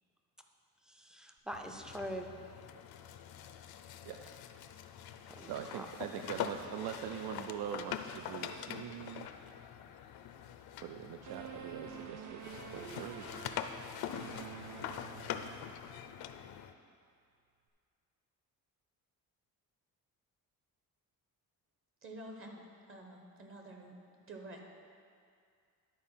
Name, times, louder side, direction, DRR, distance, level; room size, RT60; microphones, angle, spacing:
voice 1, 0.8-2.4 5.3-5.9 6.2-6.5, equal, ahead, 4 dB, 0.4 m, -44 dB
sound 1, 1.5-12.1 12.4-16.7, left 9 dB, 80° left, 0.5 m, -44 dB
voice 2, 5.4-9.3 9.8-9.9 10.8-13.3, right 9 dB, 90° right, 5 dB, 0.5 m, -43 dB
sound 2, 11.3-15.9, right 6 dB, 50° right, 0.7 m, -49 dB
voice 3, 22.0-23.9 24.3-24.7, right 1 dB, 35° right, 1 dB, 1.0 m, -49 dB
10.5 x 4.4 x 5.7 m, 2.3 s
cardioid pair, 140°, 37 cm